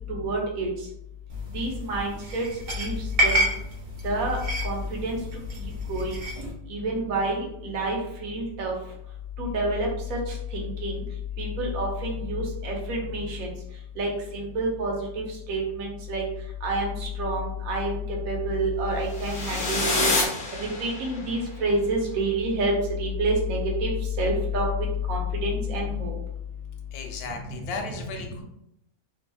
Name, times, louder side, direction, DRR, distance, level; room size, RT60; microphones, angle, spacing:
voice 1, 0.1-0.7 1.5-2.5 2.8-2.9 3.2-3.5 4.0-4.4 4.6-5.2 5.6-6.2 6.7-8.7 9.4-10.2 10.5-11.0 11.4-13.5 14.0-16.2 16.6-20.1 20.6-22.7 23.0-23.9 24.2-26.1, right 1 dB, 75° right, -1 dB, 1.1 m, -28 dB
sound 1, 1.3-6.5, equal, 50° right, 0.6 m, -29 dB
sound 2, 19.1-21.3, left 2 dB, 60° left, 1.0 m, -27 dB
voice 2, 26.9-28.4, left 4 dB, 90° left, 4 dB, 1.1 m, -35 dB
2.8 x 2.6 x 2.2 m, 0.80 s
omnidirectional pair, 1.5 m